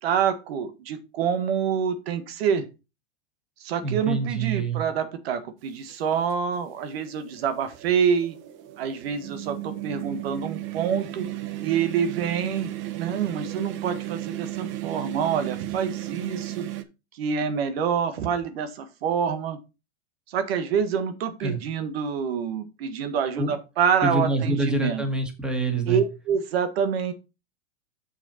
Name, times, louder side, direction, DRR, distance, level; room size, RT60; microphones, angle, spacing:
voice 1, 0.0-2.6 3.6-8.4 8.8-11.3 11.6-16.7 17.2-19.6 20.3-25.0 25.9-27.1, right 7 dB, 70° right, 9 dB, 1.5 m, -26 dB
voice 2, 3.8-4.8 21.4-21.6 23.4-23.5 24.0-26.0, right 3 dB, 5° right, 4 dB, 1.7 m, -26 dB
sound 1, 5.9-6.0 7.1-16.8, right 16 dB, 40° right, 0.9 m, -35 dB
7.0 x 5.7 x 4.3 m, 0.27 s
supercardioid pair, 130°, 32 cm